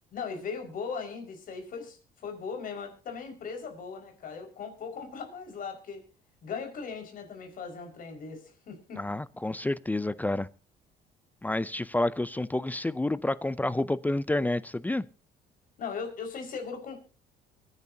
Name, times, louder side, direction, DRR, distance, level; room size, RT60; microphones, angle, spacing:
voice 1, 0.1-6.0 6.4-9.0 15.8-17.0, left 5 dB, 55° left, 5.4 m, -38 dB
voice 2, 9.0-10.5 11.4-15.0, left 2 dB, 10° left, 0.5 m, -29 dB
24.0 x 10.5 x 2.8 m
cardioid pair, 110°, 17 cm